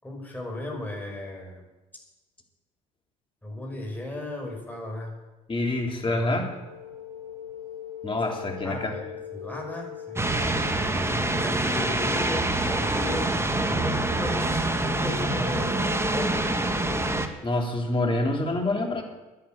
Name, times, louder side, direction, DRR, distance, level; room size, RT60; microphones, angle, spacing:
voice 1, 0.0-1.6 3.4-5.1 6.1-6.4 8.6-9.1 9.3-10.6 11.2-16.4, left 1 dB, 10° left, 0 dB, 5.8 m, -36 dB
voice 2, 5.5-6.6 8.0-9.0 17.4-19.0, left 2 dB, 25° left, 1 dB, 3.6 m, -26 dB
sound 1, 6.4-17.1, left 9 dB, 85° right, 3.9 m, -41 dB
sound 2, 10.2-17.3, right 2 dB, 15° right, 1.7 m, -26 dB
10.5 x 10.0 x 9.1 m, 1.1 s
hypercardioid pair, 60°, 19 cm